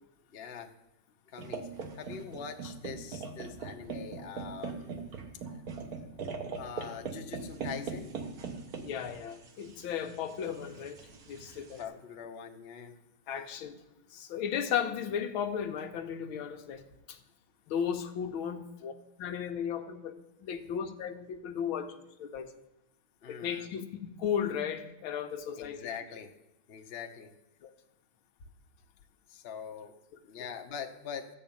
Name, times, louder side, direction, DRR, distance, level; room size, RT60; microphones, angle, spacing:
voice 1, 0.3-0.7 1.3-5.0 6.5-8.1 11.8-12.9 23.2-23.7 25.6-26.3 26.7-27.3 29.3-29.9 30.3-31.3, left 7 dB, 45° left, 4 dB, 0.8 m, -43 dB
sound 1, 1.4-11.8, right 5 dB, 55° right, 1.5 m, -41 dB
voice 2, 8.8-11.0 11.3-11.8 13.3-13.8 14.1-17.2 17.7-18.9 19.2-22.5 23.3-25.8 27.6-27.7, left 8 dB, 90° left, 7 dB, 1.7 m, -35 dB
14.0 x 5.5 x 8.7 m, 0.89 s
omnidirectional pair, 2.2 m